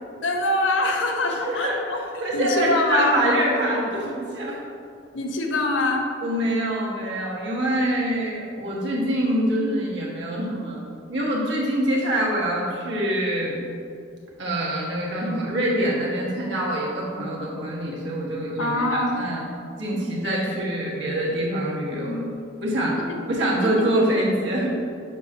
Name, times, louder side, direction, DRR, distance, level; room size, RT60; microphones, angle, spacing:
voice 1, 0.2-2.0 2.3-3.2 5.1-6.1 18.6-19.2 21.9-22.3 23.1-23.2 23.6-23.7, left 2 dB, 75° left, 2 dB, 0.8 m, -24 dB
voice 2, 1.4-1.8 2.2-4.6 6.2-10.8 11.1-13.6 14.4-19.4 19.8-22.2 22.6-23.0 23.3-24.7, right 1 dB, 65° right, -5 dB, 1.6 m, -25 dB
8.0 x 2.8 x 5.5 m, 2.5 s
head